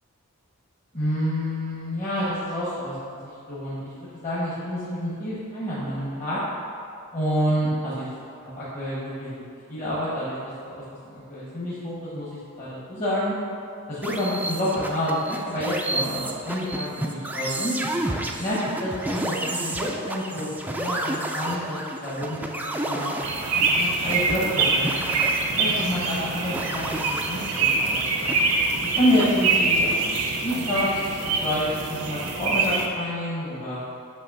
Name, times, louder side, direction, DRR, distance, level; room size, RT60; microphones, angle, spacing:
voice 1, 0.9-6.4 7.1-8.1 8.4-9.4 9.7-10.8 11.1-13.3 13.9-17.7 18.4-23.1 23.7-28.3 29.0-30.9 31.4-33.8, equal, 35° left, -10 dB, 1.3 m, -28 dB
sound 1, 14.0-29.6, right 1 dB, 5° right, 0.4 m, -31 dB
sound 2, 23.2-32.9, right 3 dB, 85° right, 0.8 m, -25 dB
9.0 x 3.1 x 5.5 m, 2.4 s
head